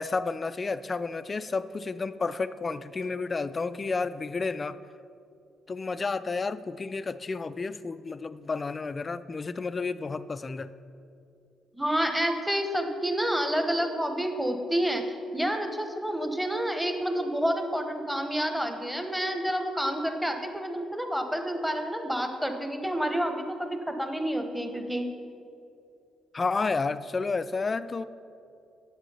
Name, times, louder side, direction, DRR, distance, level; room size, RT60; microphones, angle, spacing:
voice 1, 0.0-4.8 5.7-10.7 26.3-28.1, left 4 dB, 30° left, 14 dB, 0.4 m, -31 dB
voice 2, 11.7-15.0 15.3-25.1, equal, 5° right, 6 dB, 1.1 m, -29 dB
9.1 x 7.4 x 5.6 m, 2.5 s
cardioid pair, 90°, 0 cm